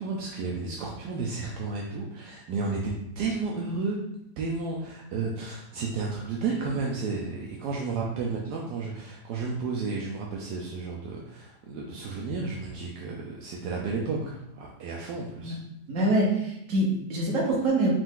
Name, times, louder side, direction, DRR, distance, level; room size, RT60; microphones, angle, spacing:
voice 1, 0.0-4.0 4.4-15.6, right 4 dB, 75° right, -2 dB, 1.2 m, -32 dB
voice 2, 15.9-17.9, right 1 dB, 55° right, -2 dB, 1.5 m, -25 dB
5.2 x 2.6 x 3.7 m, 0.84 s
omnidirectional pair, 1.8 m